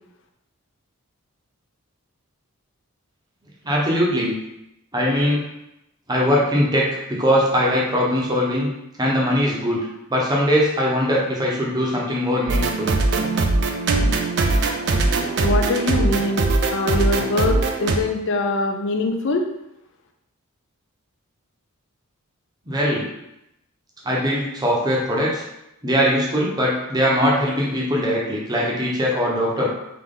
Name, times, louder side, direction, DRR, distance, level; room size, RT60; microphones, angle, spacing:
voice 1, 3.6-4.3 4.9-5.4 6.1-8.7 9.0-12.9 22.7-23.1 24.0-25.4 25.8-29.7, equal, 20° right, -3 dB, 0.8 m, -21 dB
sound 1, 12.5-18.0, right 3 dB, 55° right, 0.4 m, -21 dB
voice 2, 15.4-19.5, left 2 dB, 55° left, 4 dB, 0.5 m, -23 dB
3.7 x 2.9 x 3.7 m, 0.86 s
head